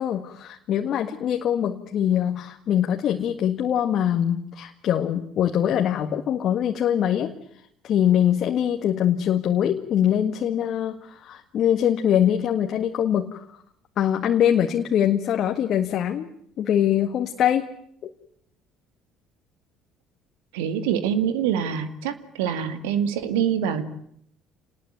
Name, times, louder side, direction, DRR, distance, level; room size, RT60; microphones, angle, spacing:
voice 1, 0.0-7.3 7.8-13.6 14.0-16.3 16.6-17.7 18.0-18.1, left 10 dB, 55° left, 5 dB, 1.8 m, -23 dB
voice 2, 20.5-23.8, right 8 dB, 75° right, 11 dB, 2.3 m, -25 dB
28.5 x 19.5 x 9.4 m, 0.70 s
hypercardioid pair, 55°, 0 cm